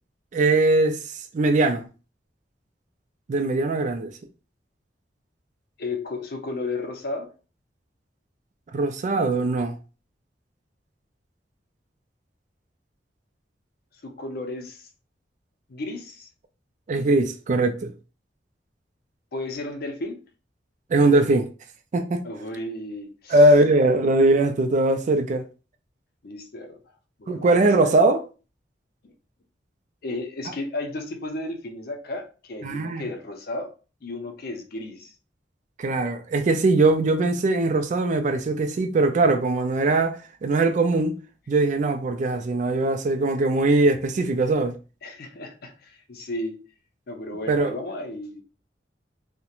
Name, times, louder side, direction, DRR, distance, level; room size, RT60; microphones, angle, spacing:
voice 1, 0.3-1.9 3.3-4.1 8.7-9.8 16.9-17.9 20.9-21.5 21.9-22.2 23.3-25.5 27.3-28.2 32.6-33.1 35.8-41.2 41.5-44.7 47.5-47.7, right 2 dB, 45° right, 0.3 m, -21 dB
voice 2, 5.8-7.3 14.0-14.9 15.7-16.3 19.3-20.2 22.2-23.4 26.2-26.8 27.2-28.0 29.0-29.1 30.0-33.7 34.0-35.1 45.0-46.6 47.1-48.4, left 2 dB, 60° left, 0.5 m, -33 dB
2.4 x 2.1 x 2.9 m
head